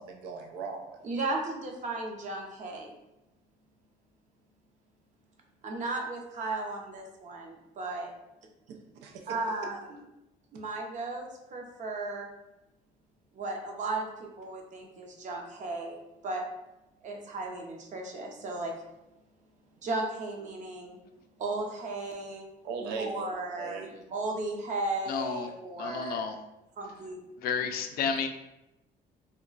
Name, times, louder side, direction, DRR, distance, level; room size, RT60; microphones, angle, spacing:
voice 1, 0.0-1.0 9.0-9.3 22.6-23.3 23.6-23.9, right 5 dB, 85° right, 2 dB, 0.5 m, -38 dB
voice 2, 1.0-2.9 5.6-8.1 9.3-10.0 10.5-12.3 13.3-16.0 16.2-16.4 17.0-18.7 19.8-21.0 21.4-22.5 23.0-26.2 26.8-27.2, right 2 dB, 45° right, 1 dB, 0.6 m, -35 dB
voice 3, 25.1-25.5 25.8-26.4 27.4-28.3, left 6 dB, 65° left, 7 dB, 0.4 m, -31 dB
2.3 x 2.2 x 3.8 m, 0.93 s
cardioid pair, 110°, 17 cm